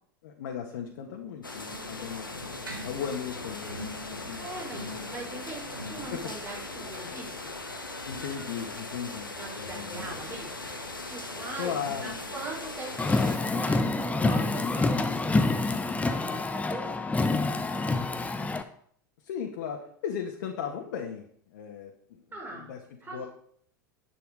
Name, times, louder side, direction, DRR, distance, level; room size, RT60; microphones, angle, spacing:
voice 1, 0.2-4.7 6.1-6.3 7.0-7.2 8.1-10.0 11.6-12.1 19.2-22.3 22.5-22.8 23.1-23.3, left 8 dB, 60° left, 2 dB, 1.7 m, -37 dB
sound 1, 0.8-8.5 9.7-17.0 17.3-17.4 17.6-17.7 18.4-18.5, equal, 85° right, 2.3 m, -46 dB
sound 2, 1.4-13.4, left 2 dB, 85° left, 1.4 m, -39 dB
voice 2, 4.4-7.5 9.4-10.5 11.0-15.5 16.0-17.3 17.5-18.1 22.3-22.7 23.0-23.3, right 2 dB, 20° right, -2 dB, 6.1 m, -41 dB
Car, 13.0-18.6, left 3 dB, 15° left, 1.0 m, -27 dB
10.5 x 9.2 x 4.9 m, 0.63 s
figure-of-eight pair, 80°, 11 cm